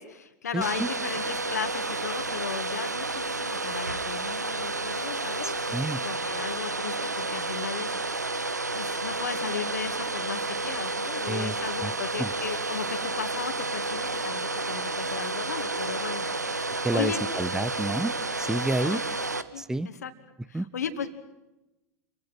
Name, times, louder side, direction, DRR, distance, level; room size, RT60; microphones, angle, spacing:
voice 1, 0.0-8.4 8.7-14.4 14.7-17.2 18.8-19.3 19.5-20.1 20.5-21.1, left 7 dB, 70° left, 8 dB, 2.4 m, -36 dB
voice 2, 0.5-0.9 5.4-6.0 11.3-11.9 12.2-12.3 16.8-19.0 19.6-19.9 20.5-20.7, right 2 dB, 5° right, 17 dB, 1.0 m, -30 dB
Domestic sounds home sounds, 0.6-19.4, right 3 dB, 85° right, 1.3 m, -31 dB
29.0 x 24.0 x 5.9 m, 1.0 s
figure-of-eight pair, 90°, 9 cm